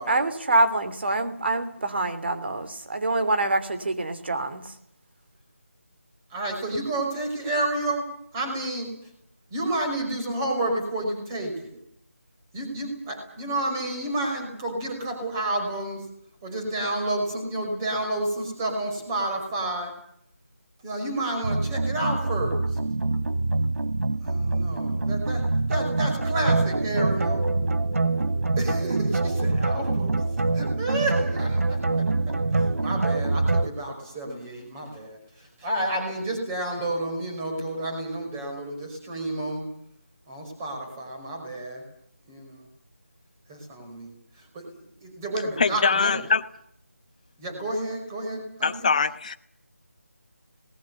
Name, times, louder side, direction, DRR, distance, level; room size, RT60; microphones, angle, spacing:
voice 1, 0.1-4.7, right 2 dB, 50° right, 10 dB, 3.1 m, -25 dB
voice 2, 6.3-8.0 8.3-8.9 9.5-11.8 12.5-16.0 16.4-19.9 20.8-22.8 24.2-25.4 25.7-27.5 28.6-30.2 30.5-39.6 40.3-41.8 42.3-42.7 43.5-46.2 47.4-48.9, right 1 dB, 15° right, 3 dB, 5.0 m, -30 dB
sound 1, 21.4-33.7, right 3 dB, 70° right, 1.2 m, -25 dB
voice 3, 45.6-46.4 48.6-49.3, left 5 dB, 30° left, 10 dB, 1.1 m, -23 dB
27.5 x 20.0 x 6.9 m, 0.68 s
figure-of-eight pair, 170°, 8 cm